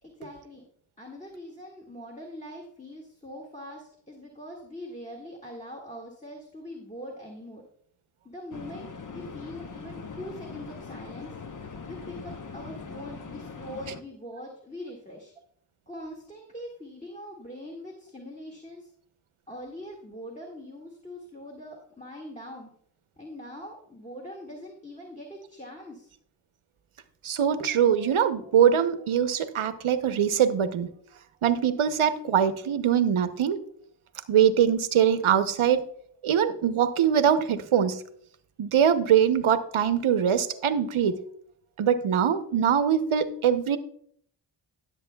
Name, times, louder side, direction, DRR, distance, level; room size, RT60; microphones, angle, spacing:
voice 1, 0.0-0.6 1.0-7.6 8.2-11.4 11.8-15.3 15.9-18.9 19.5-22.7 23.2-26.1, equal, 15° left, 0 dB, 1.8 m, -42 dB
sound 1, 8.5-14.0, left 5 dB, 40° left, 0.9 m, -41 dB
voice 2, 27.2-30.9 31.4-33.6 34.3-35.8 36.2-38.0 38.6-41.2 41.8-43.8, right 8 dB, 80° right, 10 dB, 0.8 m, -23 dB
16.0 x 7.8 x 2.3 m, 0.66 s
cardioid pair, 55°, 48 cm